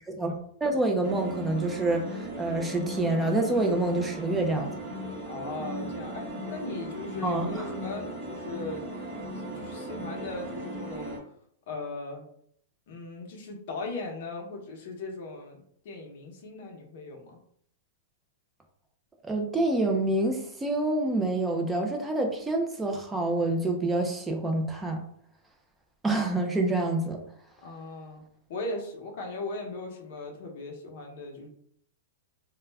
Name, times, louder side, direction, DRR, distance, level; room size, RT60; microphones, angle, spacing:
voice 1, 0.6-4.7 7.2-7.7 19.2-25.0 26.0-27.2, right 2 dB, 5° right, 2 dB, 0.4 m, -27 dB
sound 1, 1.0-11.2, right 1 dB, 30° right, 0.8 m, -37 dB
voice 2, 5.3-8.8 9.5-11.2 11.7-12.2 12.9-17.4 27.6-28.2 28.5-31.5, left 3 dB, 50° left, 1 dB, 0.7 m, -38 dB
2.3 x 2.1 x 3.3 m, 0.65 s
supercardioid pair, 165°, 0 cm